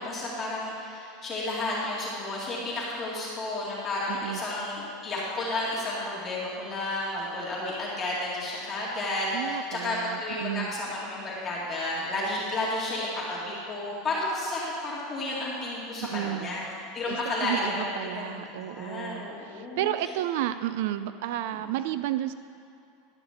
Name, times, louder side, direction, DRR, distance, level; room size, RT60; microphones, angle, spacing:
voice 1, 0.0-16.6 16.9-19.9 21.5-21.7, left 2 dB, 25° left, -6 dB, 2.1 m, -32 dB
voice 2, 4.1-4.4 9.3-10.7 16.0-16.5 17.1-22.3, right 12 dB, 70° right, 12 dB, 0.3 m, -32 dB
11.5 x 4.8 x 7.9 m, 2.6 s
supercardioid pair, 145°, 0 cm